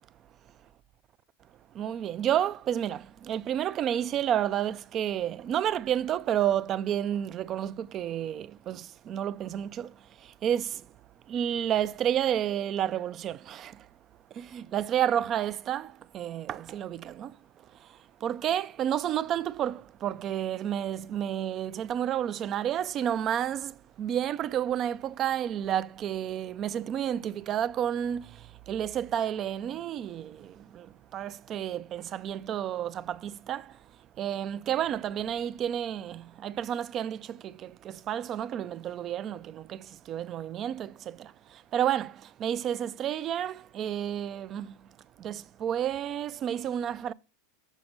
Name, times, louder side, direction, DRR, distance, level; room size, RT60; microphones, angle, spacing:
voice 1, 1.8-9.9 10.4-10.8 11.3-13.7 14.4-17.3 18.2-28.3 28.7-30.9 31.1-33.7 34.2-41.3 41.7-44.7 45.2-47.1, right 10 dB, 35° right, 0.3 m, -30 dB
7.3 x 4.2 x 6.5 m
hypercardioid pair, 120°, 0 cm